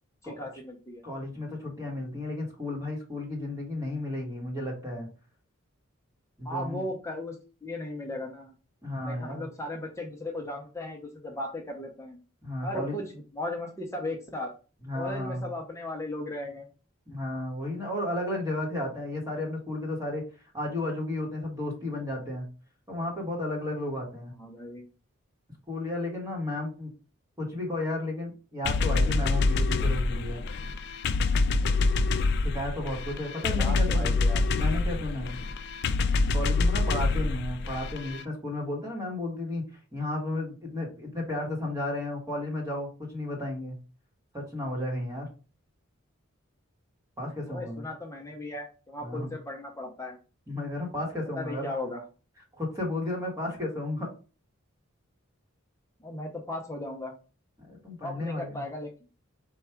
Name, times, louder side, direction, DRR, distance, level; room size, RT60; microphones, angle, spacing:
voice 1, 0.2-1.0 6.4-8.5 9.0-12.2 12.6-14.5 14.9-16.7 24.4-24.9 33.3-34.4 37.0-37.3 47.5-50.2 51.4-52.0 56.0-57.1 58.0-58.9, left 1 dB, 15° left, 1 dB, 0.6 m, -37 dB
voice 2, 1.0-5.1 6.4-6.8 8.8-9.5 12.4-13.0 14.8-15.4 17.1-20.2 20.5-22.5 22.9-24.3 25.7-26.9 27.4-30.4 32.4-34.2 34.5-35.4 36.3-39.6 39.9-43.8 44.3-45.3 47.2-47.8 49.0-49.3 50.5-51.7 52.5-54.1 57.7-58.6, left 1 dB, 15° right, -1 dB, 1.1 m, -33 dB
sound 1, 28.6-38.2, left 3 dB, 50° left, 0.3 m, -26 dB
4.5 x 2.3 x 4.4 m, 0.34 s
head